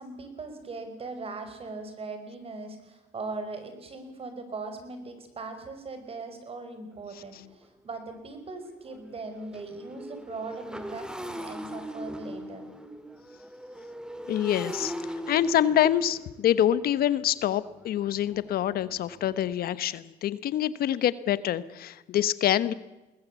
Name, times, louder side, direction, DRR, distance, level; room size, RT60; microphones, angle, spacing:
voice 1, 0.0-12.6, right 3 dB, 35° right, 8 dB, 5.1 m, -40 dB
Motorcycle, 6.9-7.0 7.5-7.6 7.9-19.5, equal, 5° right, 1.9 m, -41 dB
voice 2, 14.3-14.9 15.3-22.7, left 11 dB, 65° left, 16 dB, 1.0 m, -26 dB
22.0 x 19.5 x 8.3 m, 1.1 s
cardioid pair, 110°, 17 cm